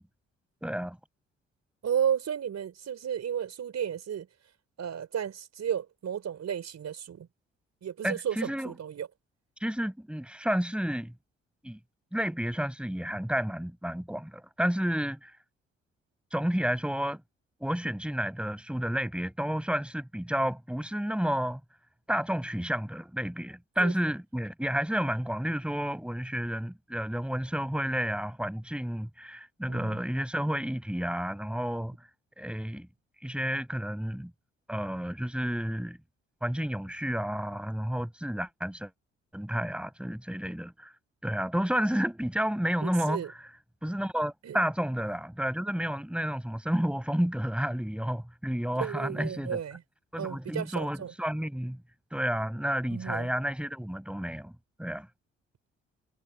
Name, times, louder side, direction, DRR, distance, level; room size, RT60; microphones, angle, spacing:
voice 1, 0.6-1.0 8.0-8.7 9.6-11.1 11.6-11.8 12.1-15.3 16.3-17.2 17.6-21.6 22.1-31.9 32.4-32.9 33.2-34.3 34.7-36.0 36.4-38.9 39.3-40.9 41.2-43.2 43.8-49.6 50.1-51.8 52.1-54.5 54.8-55.1, equal, 5° right, 8.0 m, -31 dB
voice 2, 1.8-4.3 4.8-7.3 7.8-9.1 23.8-23.9 29.7-30.0 42.8-43.3 44.4-44.6 48.8-49.8 50.2-51.1 52.9-53.3, right 8 dB, 50° right, 4.9 m, -33 dB
figure-of-eight pair, 40°, 33 cm